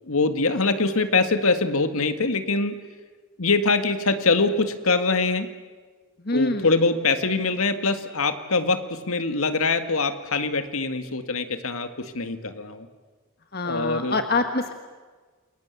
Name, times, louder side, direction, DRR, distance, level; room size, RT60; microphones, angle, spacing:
voice 1, 0.1-2.8 3.4-5.5 6.3-12.9 13.6-14.2, left 3 dB, 85° left, 9 dB, 2.0 m, -23 dB
voice 2, 6.2-6.9 13.5-14.7, left 2 dB, 45° left, 7 dB, 1.4 m, -25 dB
29.5 x 22.5 x 8.3 m, 1.4 s
head